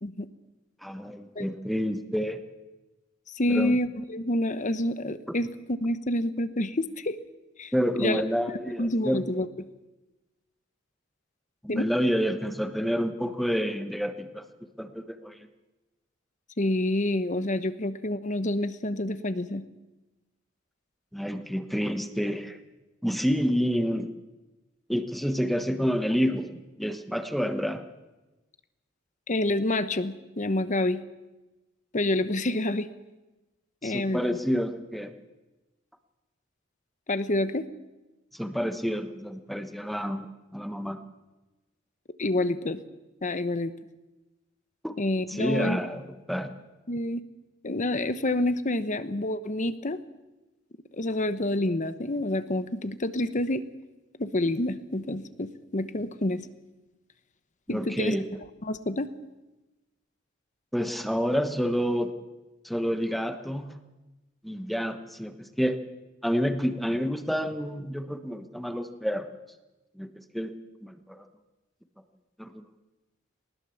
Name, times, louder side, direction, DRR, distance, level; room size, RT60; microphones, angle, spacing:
voice 1, 0.8-2.4 3.5-3.8 7.7-9.2 11.6-14.4 14.8-15.5 21.1-22.6 23.0-24.1 24.9-26.5 26.8-27.8 33.8-35.1 38.3-41.0 44.8-45.0 45.3-46.5 57.7-58.3 60.7-62.1 62.6-63.7 64.4-65.8 66.2-69.3 70.0-70.1 70.3-70.5 70.8-71.2 72.4-72.6, equal, ahead, 8 dB, 1.2 m, -29 dB
voice 2, 3.3-7.2 7.6-8.2 8.8-9.5 11.7-11.9 16.6-19.6 29.3-31.0 31.9-32.9 33.8-34.4 37.1-37.6 42.2-42.8 43.2-43.7 45.0-45.8 46.9-47.2 47.6-50.0 50.9-53.6 54.2-56.4 57.7-58.1 58.6-59.1, left 1 dB, 40° left, 12 dB, 1.0 m, -28 dB
20.0 x 19.5 x 7.2 m, 1.1 s
head